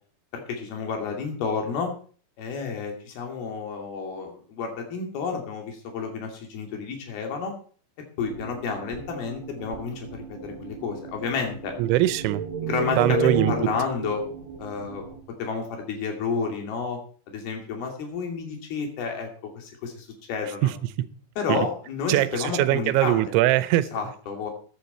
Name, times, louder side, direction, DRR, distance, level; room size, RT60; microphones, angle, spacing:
voice 1, 0.3-1.9 2.4-7.5 8.2-11.7 12.6-14.2 14.6-15.1 15.4-17.0 17.3-19.3 19.6-20.7 21.4-23.2 23.9-24.5, left 5 dB, 60° left, 4.4 m, -30 dB
sound 1, 8.2-15.2, right 4 dB, 45° right, 1.5 m, -34 dB
voice 2, 11.8-12.4 13.0-13.5 20.6-20.7 21.5-21.7 22.1-23.9, right 15 dB, 85° right, 3.1 m, -21 dB
15.0 x 10.0 x 4.3 m
omnidirectional pair, 5.2 m